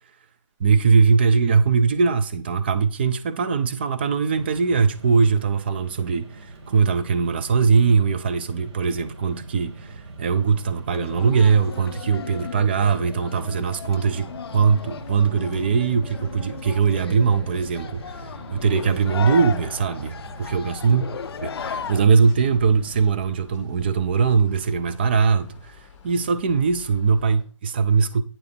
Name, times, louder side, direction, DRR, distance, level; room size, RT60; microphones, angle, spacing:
voice 1, 0.6-21.0 21.4-28.2, right 5 dB, 20° right, 0.3 m, -21 dB
Mechanisms, 4.3-23.8, right 3 dB, 55° right, 1.9 m, -42 dB
sound 1, 10.9-22.0, left 7 dB, 50° left, 0.4 m, -36 dB
sound 2, 13.9-27.4, left 6 dB, 20° left, 1.6 m, -48 dB
8.7 x 6.8 x 3.2 m
figure-of-eight pair, 150°, 16 cm